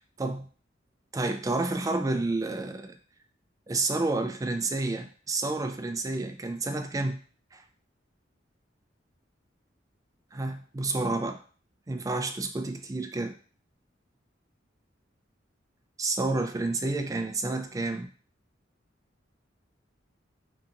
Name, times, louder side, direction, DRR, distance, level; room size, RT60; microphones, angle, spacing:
voice 1, 1.1-3.0 3.7-7.2 7.5-7.6 10.3-11.4 11.9-13.3 16.0-18.1, right 2 dB, 20° right, 6 dB, 0.3 m, -30 dB
2.8 x 2.5 x 3.7 m, 0.42 s
head